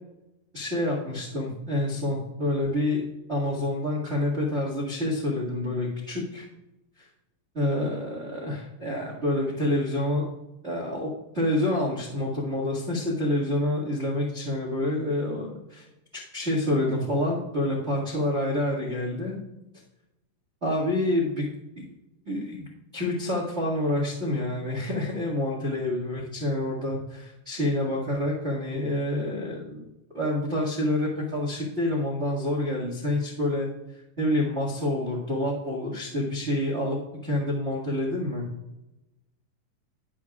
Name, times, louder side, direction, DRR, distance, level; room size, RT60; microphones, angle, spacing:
voice 1, 0.5-3.0 3.3-6.5 7.0-7.1 7.5-10.3 10.6-15.8 16.1-19.4 20.6-21.4 21.8-21.9 22.2-22.6 22.9-29.9 30.1-33.7 34.2-37.0 37.2-38.4, left 1 dB, 25° right, -4 dB, 1.6 m, -27 dB
19.5 x 7.6 x 2.4 m, 0.95 s
omnidirectional pair, 3.9 m